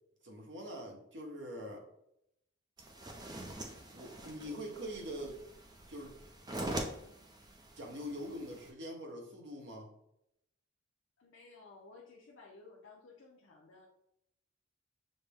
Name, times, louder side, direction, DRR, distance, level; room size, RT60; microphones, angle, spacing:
voice 1, 0.2-1.8 3.9-5.4 5.9-6.2 7.7-9.9, equal, 55° right, 1 dB, 1.0 m, -43 dB
sound 1, 2.8-8.7, right 1 dB, 20° right, 0.5 m, -44 dB
voice 2, 11.2-13.9, left 3 dB, 65° left, -2 dB, 0.6 m, -56 dB
6.3 x 2.1 x 3.5 m, 0.79 s
head